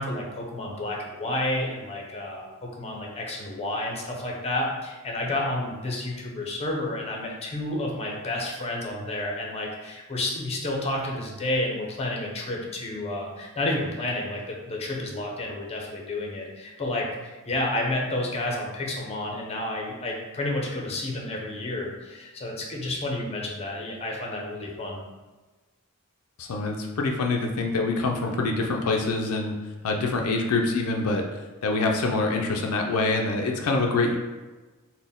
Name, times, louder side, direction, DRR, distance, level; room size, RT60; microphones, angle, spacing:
voice 1, 0.0-25.0, left 1 dB, 30° left, -1 dB, 0.7 m, -30 dB
voice 2, 26.4-29.5 29.8-31.2 31.6-34.2, left 3 dB, 85° left, 2 dB, 0.4 m, -25 dB
4.0 x 2.2 x 3.5 m, 1.2 s
head